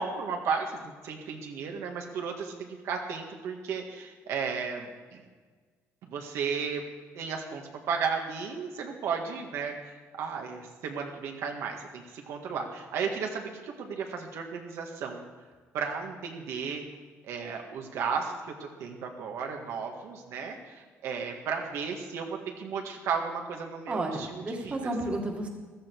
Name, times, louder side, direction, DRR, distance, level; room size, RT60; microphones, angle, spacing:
voice 1, 0.0-5.2 6.0-6.8 7.2-15.2 15.7-16.8 17.2-24.9, right 5 dB, 75° right, 2 dB, 1.9 m, -34 dB
voice 2, 23.9-25.5, right 2 dB, 25° right, 1 dB, 1.9 m, -32 dB
15.0 x 13.0 x 4.7 m, 1.5 s
cardioid pair, 145°, 5 cm